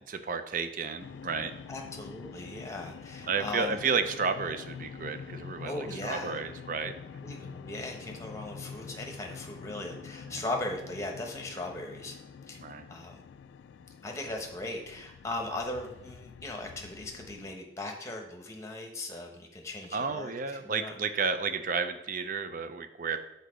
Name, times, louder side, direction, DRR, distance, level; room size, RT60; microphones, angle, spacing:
voice 1, 0.1-1.5 3.3-6.9 10.3-10.4 12.6-12.9 19.9-23.2, right 5 dB, 45° right, 9 dB, 0.5 m, -32 dB
sound 1, 1.0-17.5, left 6 dB, 80° left, 0.3 m, -46 dB
voice 2, 1.7-3.8 5.6-6.4 7.2-12.2 12.5-12.6 12.9-13.2 14.0-20.9, left 2 dB, 15° left, 2 dB, 0.9 m, -38 dB
6.6 x 4.0 x 5.0 m, 0.95 s
head